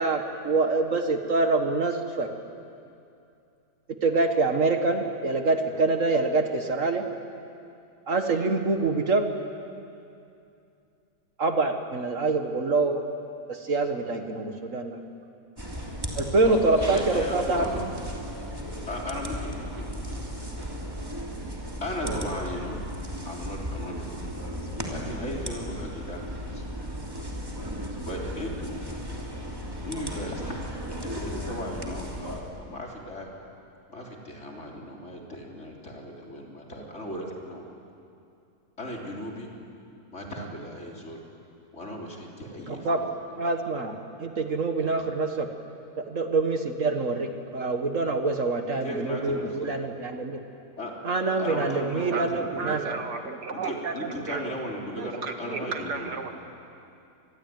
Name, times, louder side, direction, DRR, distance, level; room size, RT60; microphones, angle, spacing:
voice 1, 0.0-2.3 4.0-7.0 8.1-9.3 11.4-13.0 13.5-15.0 16.1-17.7 42.7-43.0 43.4-45.5 46.0-50.4 51.0-52.8, right 3 dB, 50° right, 6 dB, 1.8 m, -25 dB
sound 1, 15.6-32.4, equal, 15° right, 3.0 m, -35 dB
voice 2, 16.4-17.8 18.9-20.2 20.5-20.7 21.8-22.8 23.2-24.6 24.9-26.7 28.0-28.8 29.8-30.6 31.0-33.3 33.9-37.7 38.8-39.5 40.1-41.2 41.7-43.1 44.2-44.3 44.8-45.1 48.8-49.8 50.8-50.9 51.4-52.8 53.5-56.1, left 1 dB, 45° left, -1 dB, 3.9 m, -37 dB
voice 3, 52.6-54.6 55.0-56.5, right 5 dB, 80° right, 5 dB, 2.4 m, -33 dB
26.0 x 21.5 x 9.4 m, 2.6 s
omnidirectional pair, 1.7 m